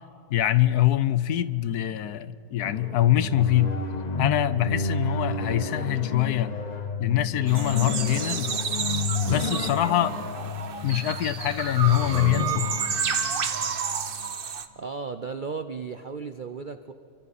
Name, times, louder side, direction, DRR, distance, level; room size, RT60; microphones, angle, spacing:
voice 1, 0.3-3.8 4.2-6.6 7.0-8.6 9.3-10.2 10.8-12.7, left 13 dB, 70° left, 14 dB, 1.1 m, -24 dB
sound 1, 2.6-14.3, left 3 dB, 40° left, 0.6 m, -31 dB
sound 2, 7.5-14.7, right 6 dB, 45° right, 0.8 m, -31 dB
voice 2, 14.8-16.9, right 5 dB, 85° right, 9 dB, 0.4 m, -35 dB
29.5 x 24.0 x 4.2 m, 2.8 s
omnidirectional pair, 1.9 m